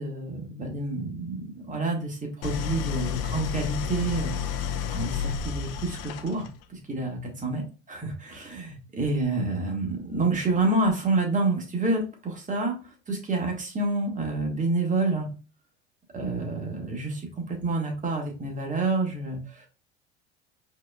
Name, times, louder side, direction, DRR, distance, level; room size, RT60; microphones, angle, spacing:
voice 1, 0.0-15.3 16.1-19.7, right 2 dB, 20° right, 1 dB, 1.6 m, -28 dB
Idling, 2.4-6.6, left 8 dB, 45° left, 0.6 m, -31 dB
4.7 x 3.2 x 2.3 m, 0.33 s
figure-of-eight pair, 70°, 35 cm